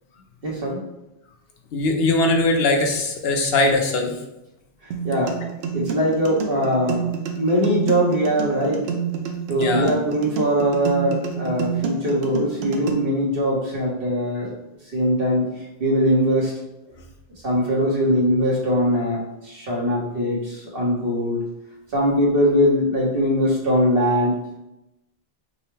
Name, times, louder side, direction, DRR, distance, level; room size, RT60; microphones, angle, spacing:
voice 1, 0.4-0.8 5.0-5.4 5.7-7.1 7.4-8.9 9.5-14.5 14.9-15.5 15.8-16.5 17.4-21.4 21.9-24.4, equal, 65° right, -3 dB, 1.3 m, -21 dB
voice 2, 1.7-4.2 9.5-9.9, left 2 dB, 80° left, 3 dB, 0.9 m, -20 dB
sound 1, 4.9-12.9, right 6 dB, 85° right, 0.8 m, -28 dB
5.1 x 2.1 x 3.2 m, 0.91 s
omnidirectional pair, 1.0 m